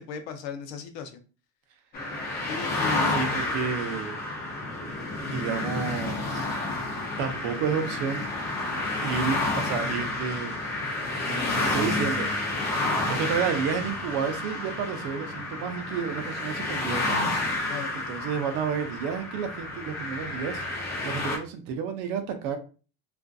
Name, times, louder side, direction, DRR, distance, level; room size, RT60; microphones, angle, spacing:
voice 1, 0.1-1.2 2.5-3.3 17.7-17.9, left 5 dB, 75° left, 6 dB, 0.7 m, -36 dB
sound 1, 1.9-21.4, left 2 dB, 25° left, 0.4 m, -30 dB
voice 2, 3.1-4.2 5.2-6.5 7.2-8.2 9.0-10.5 11.3-12.3 13.1-17.2 17.6-20.6 21.0-22.6, right 7 dB, 50° right, 7 dB, 0.5 m, -31 dB
2.4 x 2.4 x 2.2 m, 0.35 s
cardioid pair, 155°, 41 cm